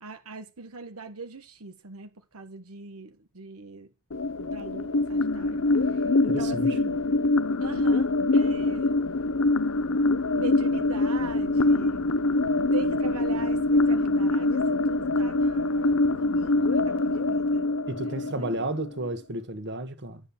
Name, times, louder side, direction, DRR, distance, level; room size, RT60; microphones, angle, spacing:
voice 1, 0.0-3.9 4.4-7.0 7.6-8.9 10.3-12.0 12.7-17.7 18.1-18.7, right 3 dB, 90° right, 1.3 m, -41 dB
sound 1, 4.1-19.1, left 2 dB, 65° left, 0.8 m, -24 dB
voice 2, 6.3-6.8 17.9-20.2, right 1 dB, 55° right, 1.7 m, -32 dB
12.5 x 7.9 x 7.2 m
head